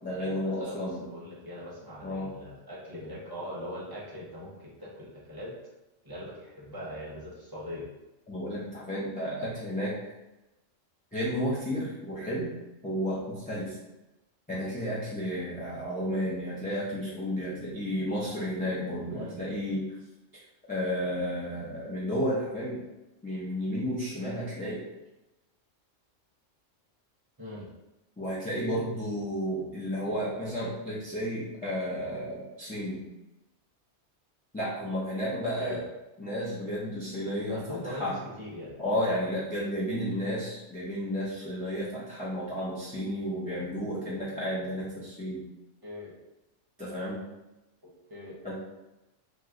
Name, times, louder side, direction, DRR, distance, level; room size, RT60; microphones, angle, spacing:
voice 1, 0.0-1.0 2.0-2.3 8.3-10.0 11.1-12.5 12.8-13.8 14.5-19.9 20.7-22.8 23.2-24.8 28.2-33.0 34.5-35.8 36.2-38.1 38.8-45.4 46.8-47.2 48.4-48.6, equal, 10° left, -9 dB, 0.4 m, -32 dB
voice 2, 0.6-5.5 6.0-7.8 19.1-19.4 27.4-27.7 35.3-35.8 37.5-38.7 45.8-46.1 47.8-48.4, left 1 dB, 20° right, -6 dB, 0.7 m, -41 dB
2.9 x 2.0 x 3.6 m, 0.99 s
omnidirectional pair, 1.3 m